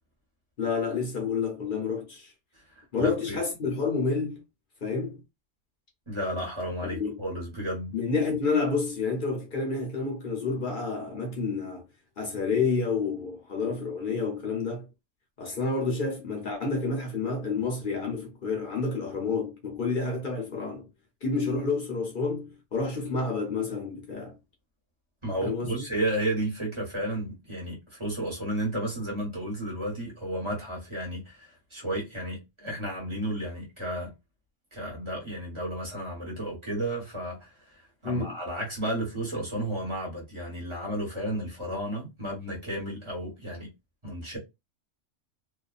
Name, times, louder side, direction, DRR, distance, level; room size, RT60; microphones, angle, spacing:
voice 1, 0.6-2.3 2.9-4.4 4.8-5.2 6.9-7.2 7.9-11.8 12.2-14.9 15.4-20.9 21.2-24.4 25.4-25.8 38.0-38.3, left 4 dB, 50° left, 0.7 m, -29 dB
voice 2, 2.8-3.4 6.1-7.9 25.2-34.1 34.7-43.7 44.0-44.4, right 1 dB, 25° right, 1.1 m, -33 dB
2.6 x 2.3 x 2.3 m
omnidirectional pair, 1.3 m